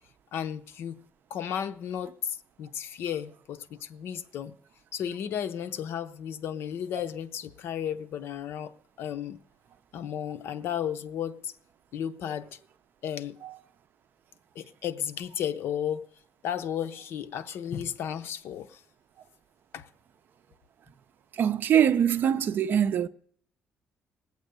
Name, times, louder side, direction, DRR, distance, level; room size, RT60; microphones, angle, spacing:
voice 1, 0.3-1.0 1.3-4.5 4.9-9.4 9.9-11.5 11.9-12.6 13.0-13.4 14.5-16.1 16.4-18.8 19.7-19.9, left 9 dB, 70° left, 0.7 m, -34 dB
voice 2, 21.3-23.1, right 9 dB, 50° right, 0.6 m, -23 dB
19.5 x 8.1 x 6.8 m
cardioid pair, 140°, 4 cm